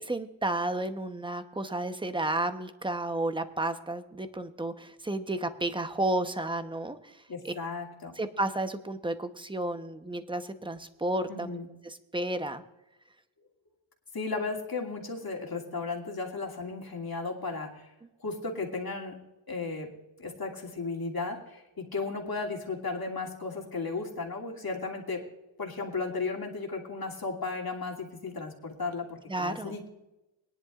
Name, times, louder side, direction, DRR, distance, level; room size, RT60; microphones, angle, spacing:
voice 1, 0.0-7.5 8.2-11.6 11.8-12.6 29.3-29.8, right 1 dB, 10° right, 9 dB, 0.9 m, -32 dB
voice 2, 7.3-8.1 11.3-11.7 14.1-17.9 18.2-19.2 19.5-19.9 20.2-25.2 25.6-29.9, left 4 dB, 45° left, 0 dB, 2.7 m, -35 dB
21.5 x 11.0 x 2.5 m, 0.99 s
wide cardioid pair, 90°, 49 cm